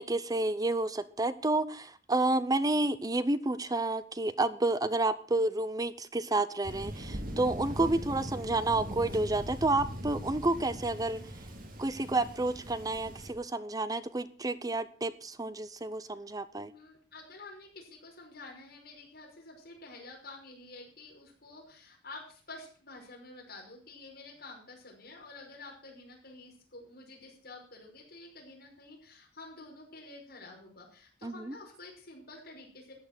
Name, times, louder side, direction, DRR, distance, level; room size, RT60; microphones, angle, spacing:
voice 1, 0.0-11.2 11.8-16.7 31.2-31.6, right 2 dB, 20° right, 14 dB, 0.7 m, -30 dB
Thunder, 6.6-13.3, equal, 50° right, 2.7 m, -40 dB
voice 2, 16.7-32.9, left 2 dB, 55° left, 0 dB, 5.8 m, -49 dB
14.5 x 9.3 x 6.2 m, 0.41 s
head